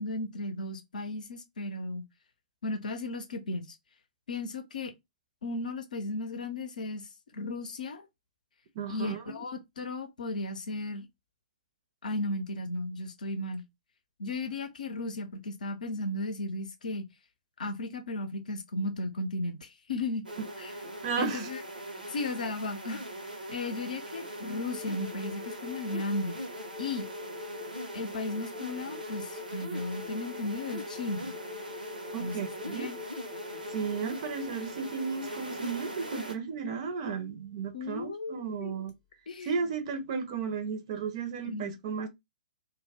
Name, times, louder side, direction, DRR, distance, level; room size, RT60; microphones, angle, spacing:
voice 1, 0.0-2.1 2.6-3.8 4.3-4.9 5.4-8.1 8.9-11.1 12.0-13.6 14.2-17.0 17.6-20.2 20.6-20.7 21.2-21.6 22.1-23.0 23.5-26.4 26.8-27.1 27.9-31.3 32.2-32.5 32.7-33.0 37.7-38.8 39.3-39.5 41.5-41.8, left 2 dB, 65° left, 0.6 m, -35 dB
voice 2, 8.8-9.3 21.0-21.5 32.1-32.9 33.7-38.9 39.5-42.1, right 5 dB, 40° right, 0.5 m, -34 dB
sound 1, 20.2-36.3, right 1 dB, 85° right, 0.7 m, -41 dB
sound 2, 24.7-37.1 38.9-39.0, left 12 dB, 15° left, 0.5 m, -47 dB
2.1 x 2.0 x 3.4 m
figure-of-eight pair, 120°, 5 cm